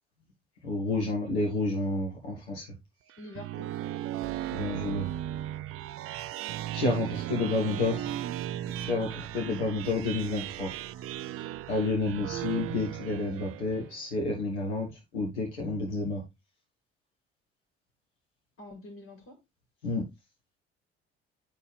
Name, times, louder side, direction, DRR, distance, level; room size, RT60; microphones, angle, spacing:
voice 1, 0.6-2.7 4.5-5.1 6.3-6.5 6.7-8.1 8.8-10.7 11.7-16.2 19.8-20.0, left 2 dB, 80° left, 0 dB, 1.7 m, -30 dB
sound 1, 3.1-13.9, right 13 dB, 45° right, 0.5 m, -36 dB
voice 2, 3.2-3.7 7.4-8.1 18.6-19.4, left 2 dB, 40° left, 2 dB, 2.9 m, -47 dB
11.0 x 4.5 x 3.3 m, 0.22 s
figure-of-eight pair, 50°, 33 cm